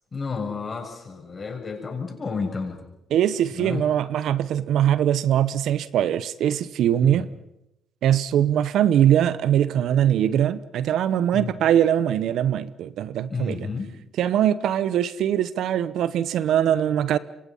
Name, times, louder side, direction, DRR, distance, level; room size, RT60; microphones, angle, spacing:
voice 1, 0.1-2.8 3.6-3.8 7.1-7.2 11.3-11.6 13.3-13.9, left 4 dB, 40° left, 7.2 m, -31 dB
voice 2, 3.1-7.3 8.0-13.6 14.2-17.2, right 10 dB, 75° right, 0.9 m, -22 dB
27.0 x 24.5 x 5.6 m
supercardioid pair, 60°, 0 cm